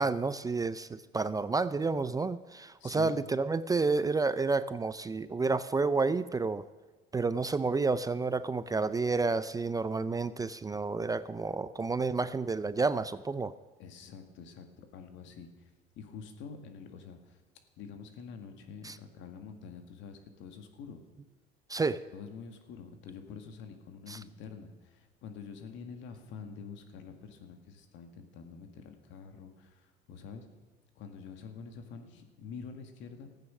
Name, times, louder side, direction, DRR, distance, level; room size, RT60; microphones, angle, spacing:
voice 1, 0.0-6.7 7.1-13.5 18.8-19.0 21.7-22.0 24.1-24.2, right 4 dB, 15° right, 15 dB, 0.4 m, -30 dB
voice 2, 2.8-3.2 13.8-15.5 16.0-17.4 17.8-21.0 22.1-30.5 31.0-33.3, left 6 dB, 70° left, 6 dB, 1.9 m, -47 dB
14.5 x 9.3 x 6.3 m, 1.3 s
supercardioid pair, 90°, 21 cm